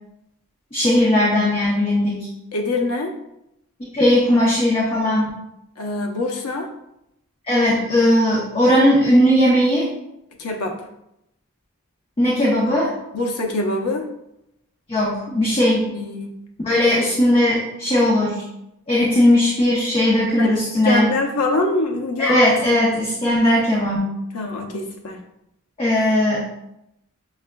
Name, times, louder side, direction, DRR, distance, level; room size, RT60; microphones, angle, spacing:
voice 1, 0.7-2.3 3.9-5.3 7.5-9.9 12.2-12.9 14.9-15.9 16.6-18.4 18.9-21.1 22.2-24.1 25.8-26.4, left 1 dB, 25° left, -6 dB, 0.7 m, -18 dB
voice 2, 2.5-3.1 5.8-6.7 10.4-10.8 13.1-14.0 15.8-16.3 20.4-22.4 24.3-25.2, left 2 dB, 85° left, 2 dB, 0.7 m, -24 dB
6.5 x 2.4 x 2.2 m, 0.83 s
head